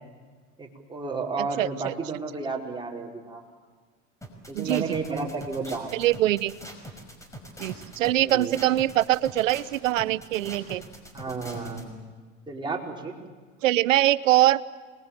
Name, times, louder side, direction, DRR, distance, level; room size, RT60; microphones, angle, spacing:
voice 1, 0.6-3.4 4.5-6.0 8.2-8.5 11.1-12.0 12.5-13.1, right 4 dB, 10° right, -2 dB, 5.2 m, -32 dB
voice 2, 1.4-1.9 4.5-4.8 5.9-6.5 7.6-10.8 13.6-14.6, right 14 dB, 80° right, 18 dB, 0.9 m, -23 dB
sound 1, 4.2-11.8, equal, 10° left, 5.6 m, -43 dB
26.5 x 21.0 x 7.7 m, 1.5 s
hypercardioid pair, 90°, 39 cm